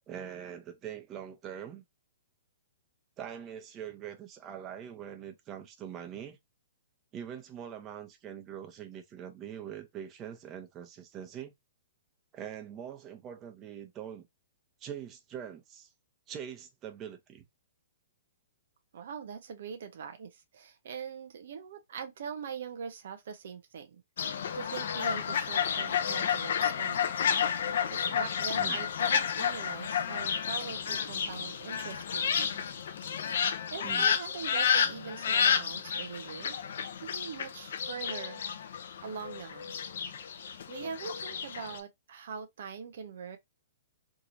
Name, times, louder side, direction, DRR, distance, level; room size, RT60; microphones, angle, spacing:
voice 1, 0.1-1.8 3.2-6.4 7.1-11.5 12.3-14.3 14.8-15.9 16.3-17.4 27.6-27.8 28.1-28.2 28.5-28.8 33.8-34.2, right 9 dB, 25° right, 0.9 m, -43 dB
voice 2, 18.9-27.2 27.9-32.6 33.7-36.6 37.0-38.4 39.0-39.8 40.7-43.4, right 6 dB, 65° right, 0.6 m, -42 dB
Fowl, 24.2-41.8, left 7 dB, 65° left, 0.6 m, -31 dB
3.7 x 2.9 x 2.6 m
hypercardioid pair, 130°, 0 cm